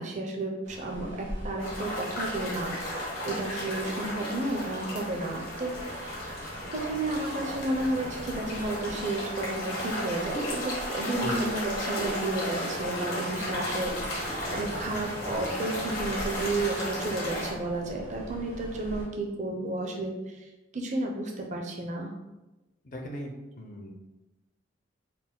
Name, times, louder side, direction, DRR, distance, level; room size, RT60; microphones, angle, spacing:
voice 1, 0.0-6.3 6.7-22.1, right 2 dB, 35° right, 1 dB, 0.5 m, -32 dB
Ocean, 0.6-19.1, equal, 75° right, 1.4 m, -43 dB
sound 1, 1.6-17.5, equal, 85° left, 1.3 m, -34 dB
voice 2, 22.8-23.9, equal, 40° left, 1 dB, 0.5 m, -38 dB
4.1 x 2.1 x 3.7 m, 1.0 s
head